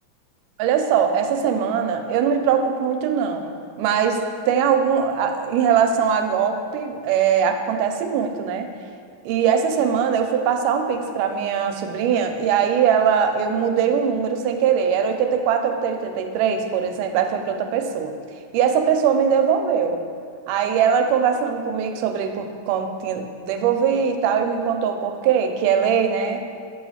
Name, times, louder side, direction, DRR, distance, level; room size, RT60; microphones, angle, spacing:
voice 1, 0.6-8.7 9.3-18.2 18.5-20.0 20.5-26.4, right 7 dB, 90° right, 6 dB, 2.1 m, -21 dB
7.7 x 3.1 x 5.6 m, 2.2 s
omnidirectional pair, 3.6 m